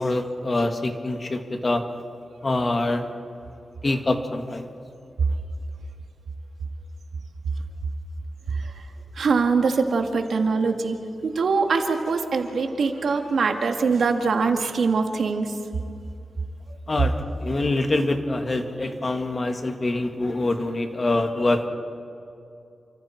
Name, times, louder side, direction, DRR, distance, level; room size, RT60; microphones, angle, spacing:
voice 1, 0.0-1.8 2.4-3.1 3.8-4.7 16.9-21.7, left 2 dB, 35° left, 5 dB, 1.9 m, -25 dB
voice 2, 9.2-15.6, right 4 dB, 75° right, 5 dB, 1.8 m, -23 dB
29.0 x 25.5 x 4.5 m, 2.6 s
wide cardioid pair, 105°, 0 cm